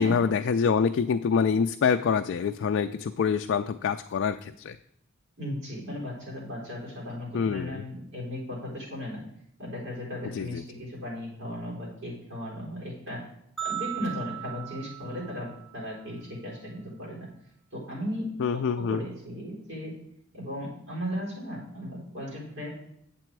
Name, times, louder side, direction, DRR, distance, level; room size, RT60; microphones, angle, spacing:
voice 1, 0.0-4.8 7.3-7.8 10.3-10.6 18.4-19.0, left 6 dB, 60° left, 7 dB, 0.3 m, -26 dB
voice 2, 5.4-9.2 9.6-13.2 13.6-17.3 17.7-19.9 20.3-22.7, equal, 65° right, -3 dB, 4.2 m, -36 dB
sound 1, 13.6-15.9, right 11 dB, ahead, 0.8 m, -37 dB
8.8 x 7.6 x 4.6 m, 0.73 s
head